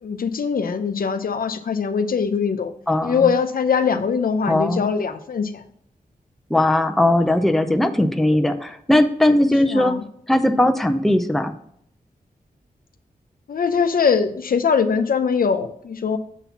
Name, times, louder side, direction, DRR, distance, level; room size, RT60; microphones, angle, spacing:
voice 1, 0.0-2.7 3.0-5.6 7.6-7.8 9.7-10.0 13.5-16.2, left 6 dB, 70° left, 9 dB, 0.7 m, -22 dB
voice 2, 2.9-3.3 4.5-4.9 6.5-9.9 10.3-11.5, left 1 dB, ahead, 7 dB, 0.6 m, -19 dB
7.1 x 4.1 x 5.7 m, 0.67 s
wide cardioid pair, 95°, 15 cm